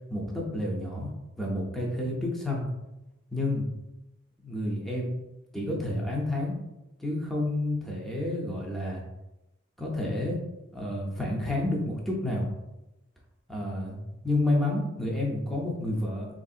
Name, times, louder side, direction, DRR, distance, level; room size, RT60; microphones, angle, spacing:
voice 1, 0.1-1.1 1.4-2.7 3.3-3.7 4.4-5.1 5.5-6.6 7.0-9.0 9.8-10.4 10.7-12.5 13.5-14.0 14.2-16.3, left 1 dB, ahead, -3 dB, 0.5 m, -29 dB
3.4 x 2.6 x 2.4 m, 0.96 s
head